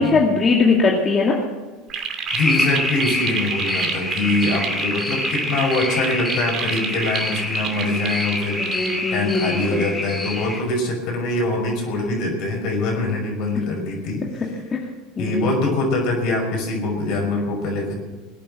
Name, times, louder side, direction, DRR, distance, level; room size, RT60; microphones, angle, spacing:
voice 1, 0.0-1.4 8.6-9.9 14.7-14.8 15.2-15.5, left 4 dB, 30° left, -1 dB, 2.4 m, -20 dB
sound 1, 1.9-9.0, right 7 dB, 45° right, 2.4 m, -30 dB
voice 2, 2.3-14.5 15.2-17.9, left 2 dB, 55° left, 2 dB, 5.7 m, -24 dB
sound 2, 2.3-10.6, left 1 dB, 10° left, 3.9 m, -26 dB
21.0 x 9.0 x 7.5 m, 1.3 s
hypercardioid pair, 80°, 0 cm